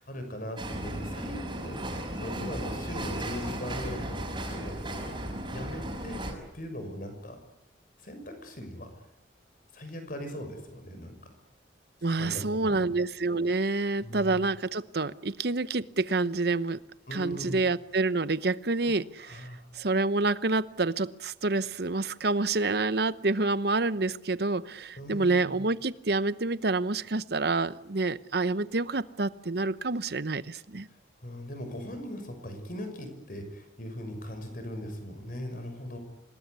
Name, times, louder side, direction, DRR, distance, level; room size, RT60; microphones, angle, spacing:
voice 1, 0.0-5.1 5.5-7.4 8.0-8.9 9.7-11.3 12.2-12.9 14.0-14.4 17.1-17.6 18.8-18.9 19.2-19.6 25.0-25.6 31.2-36.0, equal, 50° left, 7 dB, 6.3 m, -39 dB
sound 1, 0.6-6.3, right 1 dB, 25° right, 6.1 m, -35 dB
voice 2, 12.0-16.8 17.1-19.5 19.7-30.9, right 3 dB, 60° right, 15 dB, 0.9 m, -28 dB
26.5 x 20.0 x 9.7 m, 0.84 s
head